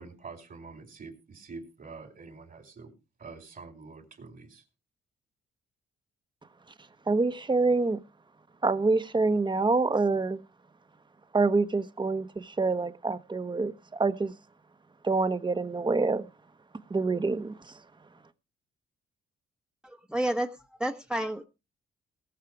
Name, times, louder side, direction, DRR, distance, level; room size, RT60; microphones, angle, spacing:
voice 1, 0.0-2.9 3.2-4.6, right 4 dB, 45° right, 4.1 m, -46 dB
voice 2, 7.1-8.0 8.6-10.4 11.3-14.3 15.0-16.3 16.9-17.8, right 3 dB, 25° right, 1.3 m, -26 dB
voice 3, 19.8-21.5, right 1 dB, 5° right, 1.3 m, -31 dB
18.5 x 6.6 x 4.8 m
cardioid pair, 90°, 20 cm